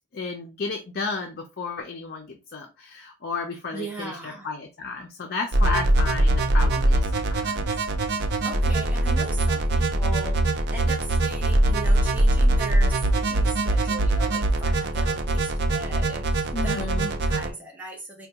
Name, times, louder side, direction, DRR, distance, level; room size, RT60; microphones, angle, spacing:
voice 1, 0.1-7.6 16.5-17.1, left 4 dB, 50° left, 0.5 m, -33 dB
voice 2, 3.7-4.5 8.4-18.3, right 2 dB, 10° right, 0.7 m, -38 dB
sound 1, 5.5-17.5, right 1 dB, 50° right, 0.4 m, -22 dB
4.4 x 2.2 x 2.8 m
head